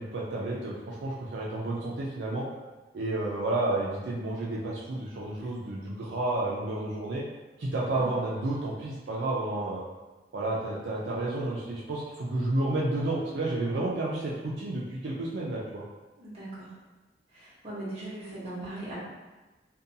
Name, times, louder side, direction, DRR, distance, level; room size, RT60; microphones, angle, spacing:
voice 1, 0.0-2.5 2.9-7.2 7.6-9.8 10.3-15.8, right 2 dB, 75° right, -5 dB, 0.4 m, -31 dB
voice 2, 16.2-16.7 17.3-19.0, right 2 dB, 35° right, -10 dB, 1.0 m, -39 dB
2.6 x 2.2 x 2.6 m, 1.2 s
head